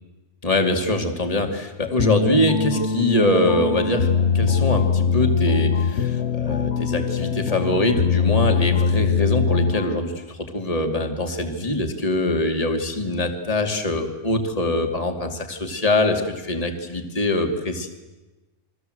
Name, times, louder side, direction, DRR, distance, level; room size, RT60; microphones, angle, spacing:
voice 1, 0.4-4.1 4.3-17.9, left 1 dB, 25° left, 4 dB, 2.6 m, -23 dB
sound 1, 2.0-10.1, left 5 dB, 50° left, 1.3 m, -22 dB
29.5 x 23.0 x 8.0 m, 1.1 s
omnidirectional pair, 1.6 m